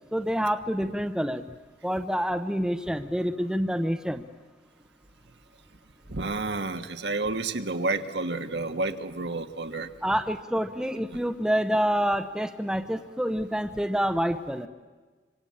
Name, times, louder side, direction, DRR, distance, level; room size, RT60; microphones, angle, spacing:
voice 1, 0.1-1.4 1.8-4.3 10.0-14.7, equal, 5° right, 8 dB, 0.8 m, -27 dB
voice 2, 6.1-9.9, right 3 dB, 70° right, 7 dB, 1.4 m, -30 dB
26.0 x 25.0 x 8.6 m, 1.4 s
head